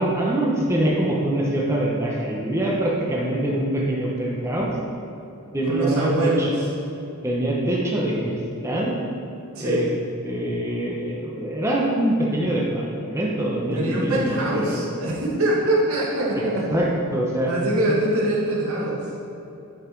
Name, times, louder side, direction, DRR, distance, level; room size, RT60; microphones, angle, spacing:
voice 1, 0.0-4.7 5.5-6.5 7.2-9.0 9.6-9.9 10.2-14.8 16.7-16.9 17.1-17.5 17.9-18.0, right 1 dB, 15° right, -4 dB, 0.9 m, -24 dB
voice 2, 5.6-6.5 9.6-9.9 13.7-17.0 17.5-19.1, right 1 dB, 70° right, -4 dB, 2.0 m, -24 dB
10.5 x 5.6 x 4.6 m, 2.9 s
head